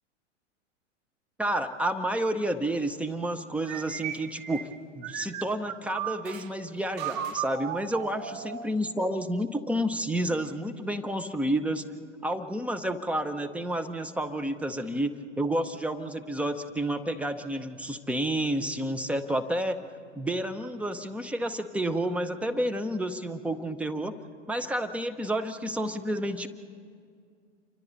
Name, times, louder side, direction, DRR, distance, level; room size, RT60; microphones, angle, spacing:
voice 1, 1.4-4.7 4.9-11.9 12.2-19.8 20.2-24.2 24.5-26.5, right 1 dB, 5° right, 8 dB, 0.8 m, -30 dB
sound 1, 3.6-6.5 7.0-8.8, right 10 dB, 40° right, 1.0 m, -36 dB
28.5 x 24.5 x 4.0 m, 2.2 s
figure-of-eight pair, 100°, 37 cm